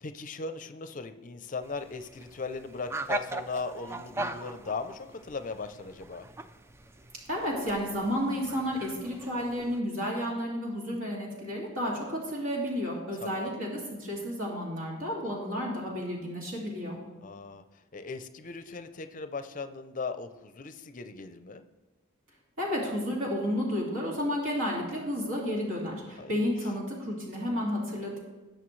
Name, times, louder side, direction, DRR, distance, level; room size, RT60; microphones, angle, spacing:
voice 1, 0.0-6.3 13.2-13.6 17.2-21.6 26.2-26.4, left 4 dB, 40° left, 10 dB, 0.6 m, -38 dB
sound 1, 1.6-9.8, right 2 dB, 10° right, 0.3 m, -40 dB
voice 2, 7.3-17.0 22.6-28.2, equal, 70° right, -3 dB, 2.4 m, -31 dB
18.5 x 6.7 x 3.2 m, 1.2 s
head